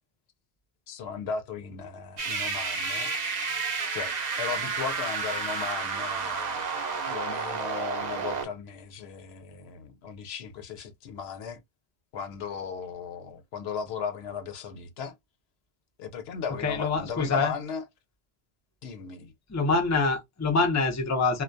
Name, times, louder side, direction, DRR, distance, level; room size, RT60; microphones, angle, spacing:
voice 1, 0.9-3.1 3.9-6.6 7.0-11.6 12.1-15.1 16.0-17.8 18.8-19.3, left 6 dB, 85° left, 0.8 m, -36 dB
sound 1, 2.2-8.5, right 5 dB, 50° right, 0.7 m, -31 dB
voice 2, 16.6-17.5 19.5-21.4, left 4 dB, 20° left, 0.5 m, -25 dB
2.2 x 2.2 x 2.5 m
omnidirectional pair, 1.1 m